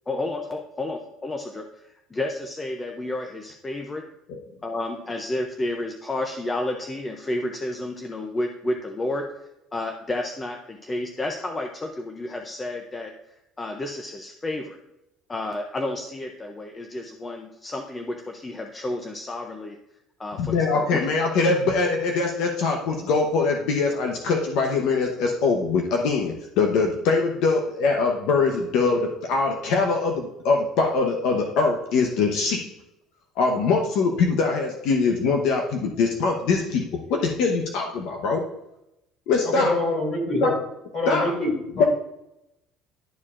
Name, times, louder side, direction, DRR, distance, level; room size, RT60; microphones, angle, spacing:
voice 1, 0.1-4.0 4.6-9.2 9.7-13.1 13.6-14.8 15.3-19.8 20.2-21.0, left 1 dB, 15° left, 3 dB, 0.5 m, -31 dB
voice 2, 20.4-32.6 33.4-38.4 39.3-39.7 40.4-40.5 41.1-41.3 41.8-41.9, left 4 dB, 60° left, 2 dB, 0.8 m, -23 dB
voice 3, 39.4-40.5 40.9-41.9, left 2 dB, 35° left, 0 dB, 2.8 m, -25 dB
11.5 x 4.7 x 2.4 m, 0.86 s
cardioid pair, 170°, 0 cm